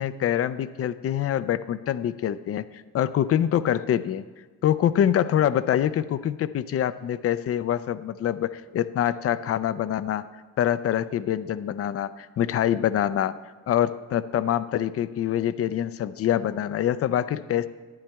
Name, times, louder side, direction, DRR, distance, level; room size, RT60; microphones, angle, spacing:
voice 1, 0.0-4.2 4.6-10.2 10.6-13.3 13.7-17.7, left 10 dB, 50° left, 15 dB, 0.5 m, -25 dB
12.0 x 9.7 x 3.5 m, 1.4 s
cardioid pair, 90°, 30 cm